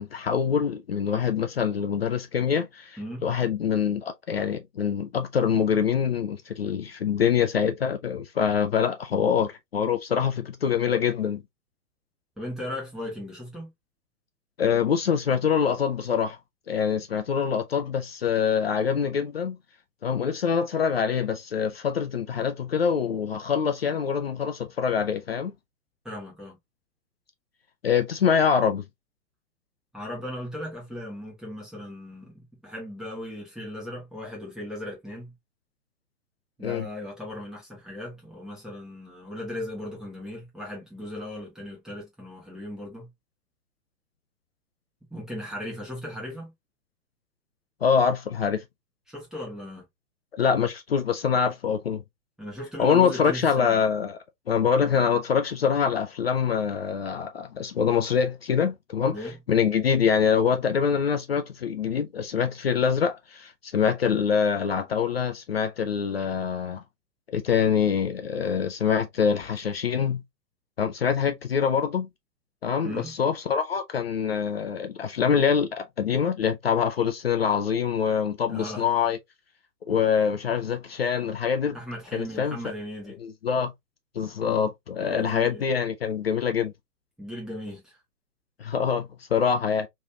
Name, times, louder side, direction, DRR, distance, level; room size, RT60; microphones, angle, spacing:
voice 1, 0.0-11.4 14.6-16.4 16.7-19.6 20.0-25.5 27.8-28.8 36.6-36.8 47.8-48.6 50.3-52.0 52.8-54.2 54.5-59.2 59.5-66.8 67.3-70.2 70.8-72.1 72.6-79.2 79.9-81.8 82.1-82.6 83.2-83.7 84.2-86.7 88.6-89.9, left 7 dB, 40° left, 0.4 m, -25 dB
voice 2, 3.0-3.3 9.2-9.3 12.4-13.7 26.0-26.6 29.9-35.3 36.6-43.1 45.1-46.5 49.1-49.8 52.4-53.8 59.1-59.4 72.8-73.2 78.5-78.8 81.7-83.2 85.1-85.7 87.2-88.0, left 1 dB, ahead, 1.4 m, -37 dB
3.2 x 3.2 x 2.6 m
figure-of-eight pair, 115°, 49 cm